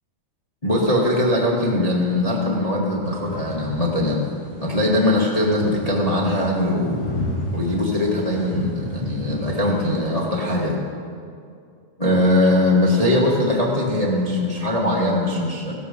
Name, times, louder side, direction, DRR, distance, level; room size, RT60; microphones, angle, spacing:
voice 1, 0.6-4.2 4.6-7.0 7.5-10.8 12.0-15.7, left 1 dB, 60° left, -3 dB, 0.4 m, -21 dB
sound 1, 3.0-10.0, left 1 dB, 45° left, 4.2 m, -33 dB
16.5 x 14.0 x 5.5 m, 2.3 s
omnidirectional pair, 4.4 m